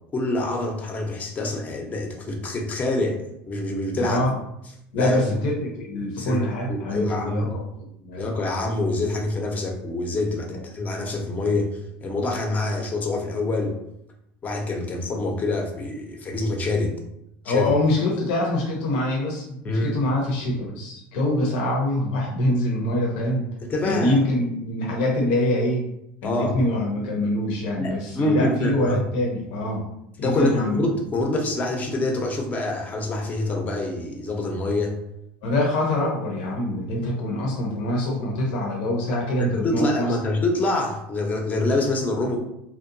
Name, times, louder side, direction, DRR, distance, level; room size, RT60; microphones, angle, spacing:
voice 1, 0.1-3.2 3.5-4.2 5.0-5.3 6.2-6.4 6.7-7.5 8.2-13.7 14.4-16.9 17.4-17.7 19.6-20.0 23.6-24.2 26.2-26.5 27.8-29.0 30.2-35.0 39.1-42.4, left 2 dB, 30° left, 2 dB, 0.6 m, -26 dB
voice 2, 4.0-4.3 4.9-7.6 8.0-8.3 10.5-10.6 17.4-23.5 23.8-25.8 26.2-29.8 30.2-30.8 35.4-40.1, left 1 dB, 75° left, -1 dB, 0.7 m, -24 dB
2.7 x 2.2 x 2.6 m, 0.80 s
supercardioid pair, 110°, 5 cm